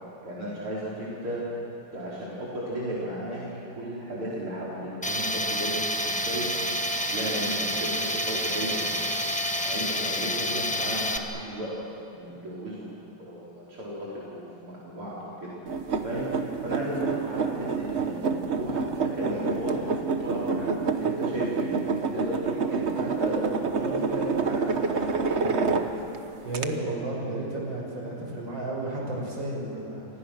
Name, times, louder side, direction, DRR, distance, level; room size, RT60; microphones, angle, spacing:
voice 1, 0.2-1.4 1.9-6.6 7.0-8.8 9.6-11.7 12.1-12.9 13.2-15.3 16.0-16.3 16.6-18.1 18.5-19.9 20.2-20.7 21.0-21.7 22.1-23.4 23.7-25.8, equal, 80° right, -7 dB, 5.2 m, -35 dB
Tools, 5.0-11.2, equal, 5° left, 0.8 m, -28 dB
sound 1, 15.7-26.2 26.5-26.7, right 4 dB, 40° right, 1.1 m, -28 dB
voice 2, 26.4-30.1, right 2 dB, 60° right, -2 dB, 6.6 m, -32 dB
29.5 x 25.0 x 6.4 m, 2.8 s
omnidirectional pair, 2.4 m